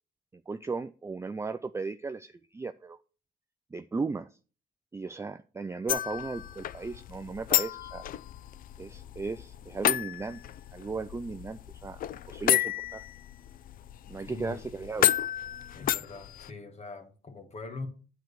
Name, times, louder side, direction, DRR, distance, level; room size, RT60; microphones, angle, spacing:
voice 1, 0.5-3.0 3.7-4.3 4.9-8.0 8.8-10.4 10.7-12.0 12.3-13.0 14.1-15.1, right 4 dB, 15° right, 0.4 m, -36 dB
sound 1, 5.9-16.5, left 11 dB, 60° left, 0.4 m, -32 dB
voice 2, 14.3-14.6 15.7-17.9, left 3 dB, 40° left, 1.9 m, -42 dB
9.3 x 4.6 x 6.7 m
cardioid pair, 100°, 17 cm